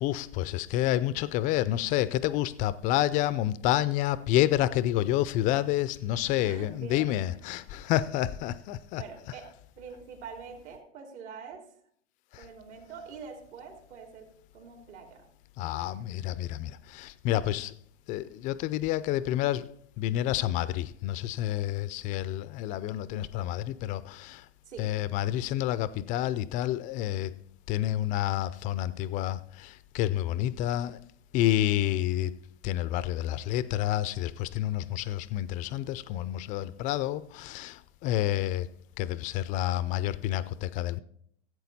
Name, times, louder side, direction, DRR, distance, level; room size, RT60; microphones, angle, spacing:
voice 1, 0.0-9.0 15.6-16.7 17.0-17.7 18.1-19.6 20.0-24.4 24.8-27.3 27.7-29.4 29.9-31.0 31.3-32.3 32.6-37.7 38.0-38.7 39.0-41.0, left 13 dB, 25° left, 0.3 m, -29 dB
voice 2, 6.4-7.1 7.5-7.6 9.0-9.4 9.8-11.6 12.4-14.3 14.5-15.3 24.6-24.9, right 6 dB, 70° right, 3.4 m, -44 dB
15.0 x 8.0 x 4.1 m
hypercardioid pair, 125°, 36 cm